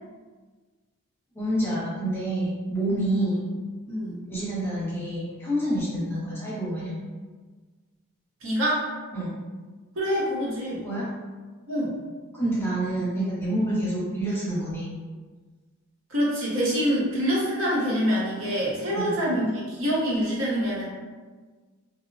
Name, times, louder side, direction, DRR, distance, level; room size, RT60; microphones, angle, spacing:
voice 1, 1.3-3.4 4.3-6.9 9.1-9.3 10.8-11.1 12.3-14.9 18.9-19.2, right 1 dB, 10° left, -8 dB, 0.6 m, -27 dB
voice 2, 3.9-4.2 5.8-6.0 8.4-8.9 10.0-10.8 11.7-11.9 16.1-20.9, equal, 65° right, -6 dB, 0.8 m, -26 dB
2.6 x 2.0 x 2.5 m, 1.4 s
head